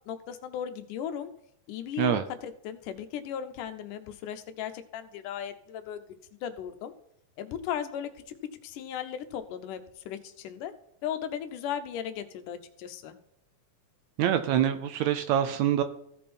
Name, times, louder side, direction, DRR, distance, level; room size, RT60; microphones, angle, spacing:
voice 1, 0.1-1.3 1.7-6.0 6.4-6.9 7.4-8.4 8.6-9.8 10.1-10.7 11.0-13.2, left 9 dB, 80° left, 9 dB, 2.4 m, -36 dB
voice 2, 14.2-15.8, right 10 dB, 75° right, 10 dB, 1.8 m, -25 dB
15.5 x 5.6 x 4.3 m, 0.74 s
omnidirectional pair, 3.7 m